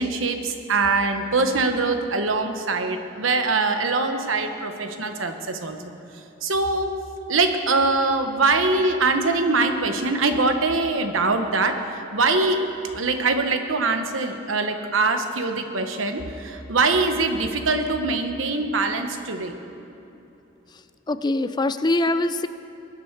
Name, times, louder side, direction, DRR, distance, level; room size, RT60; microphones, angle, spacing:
voice 1, 0.0-5.9 6.4-6.9 7.3-12.7 12.9-19.5, right 3 dB, 85° right, 6 dB, 1.1 m, -23 dB
voice 2, 21.1-22.5, left 2 dB, 20° left, 12 dB, 0.4 m, -23 dB
22.0 x 10.0 x 4.7 m, 2.9 s
head